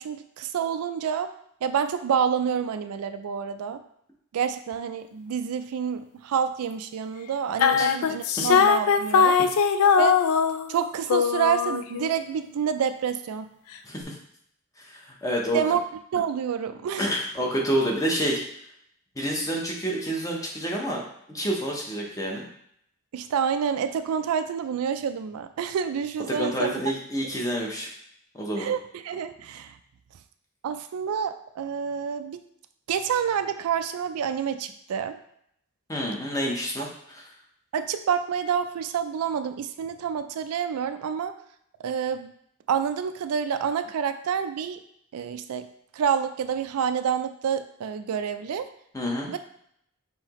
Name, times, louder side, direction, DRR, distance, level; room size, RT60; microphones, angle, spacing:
voice 1, 0.0-1.3 1.6-3.8 4.3-9.4 10.0-10.2 10.7-13.5 15.5-15.8 16.1-17.1 23.1-26.7 28.6-29.8 30.6-32.4 32.9-35.2 37.7-41.3 41.8-42.3 42.7-44.8 45.1-45.7 45.9-48.7 49.3-49.4, right 7 dB, 85° right, 10 dB, 0.3 m, -28 dB
sound 1, 7.6-10.8 11.1-12.2, left 6 dB, 70° left, 0.3 m, -21 dB
voice 2, 13.8-14.1 14.9-15.6 17.0-18.4 19.2-21.0 21.3-22.5 26.3-27.9 28.3-28.7 35.9-37.3 48.9-49.3, equal, 15° left, -1 dB, 0.8 m, -28 dB
5.7 x 2.8 x 3.0 m, 0.71 s
head